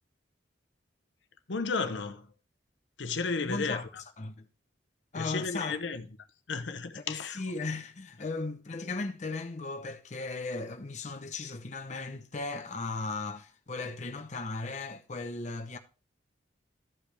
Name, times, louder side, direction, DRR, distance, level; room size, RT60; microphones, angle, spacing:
voice 1, 1.5-2.3 3.0-4.0 5.1-6.1 6.5-7.4, left 4 dB, 80° left, 0.9 m, -33 dB
voice 2, 3.4-3.8 4.2-4.5 5.1-5.8 7.1-15.8, left 3 dB, 40° left, 0.8 m, -36 dB
13.5 x 5.3 x 3.3 m
head